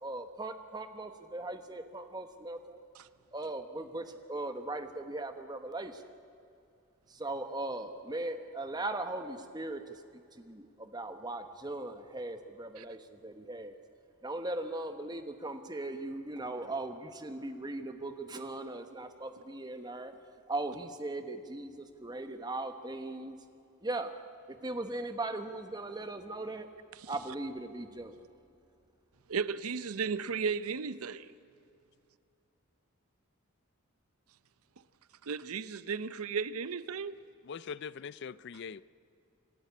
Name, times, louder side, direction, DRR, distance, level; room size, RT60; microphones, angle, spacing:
voice 1, 0.0-2.8 3.3-6.0 7.1-13.8 14.2-20.1 20.5-23.4 23.8-24.1 24.5-26.7 27.1-28.3, right 2 dB, 20° right, 1.1 m, -39 dB
voice 2, 29.3-31.3 35.2-37.2, right 5 dB, 90° right, 0.6 m, -35 dB
voice 3, 37.5-38.8, left 6 dB, 55° left, 0.4 m, -42 dB
27.5 x 11.5 x 8.4 m
head